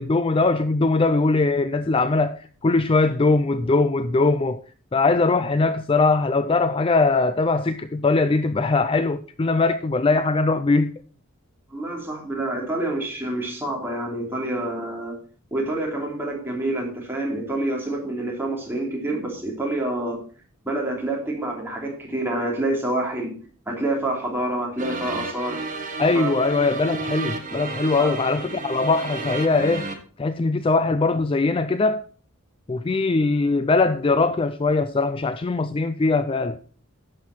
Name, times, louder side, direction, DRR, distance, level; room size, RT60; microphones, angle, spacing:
voice 1, 0.0-4.6 4.9-11.0 26.0-29.9 30.2-32.0 32.7-36.6, left 3 dB, 25° left, 0.4 m, -21 dB
voice 2, 11.7-15.2 15.5-20.2 20.6-23.3 23.7-25.6 26.1-26.3 26.7-26.8 28.0-28.2, right 1 dB, 10° right, 3.2 m, -27 dB
sound 1, 24.8-29.9, right 3 dB, 35° right, 1.8 m, -32 dB
11.5 x 7.9 x 4.2 m
head